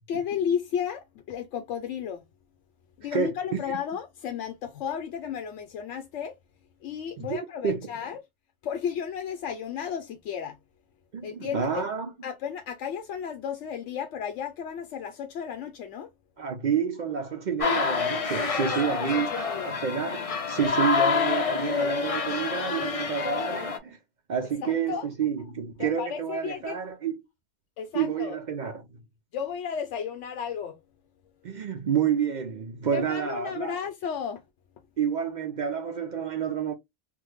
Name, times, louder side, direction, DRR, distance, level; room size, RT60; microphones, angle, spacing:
voice 1, 0.1-2.2 3.0-6.4 6.8-8.2 8.6-10.6 11.2-11.7 12.2-16.1 18.4-19.7 24.6-25.1 25.8-26.8 27.8-28.4 29.3-30.8 32.9-34.4, left 8 dB, 80° left, 0.9 m, -33 dB
voice 2, 3.1-3.8 7.2-7.8 11.1-12.1 16.4-24.0 24.3-27.2 27.9-28.9 31.4-33.8 35.0-36.7, right 7 dB, 60° right, 0.5 m, -29 dB
sound 1, 17.6-23.8, left 5 dB, 45° left, 0.5 m, -27 dB
3.5 x 2.1 x 3.0 m
omnidirectional pair, 1.2 m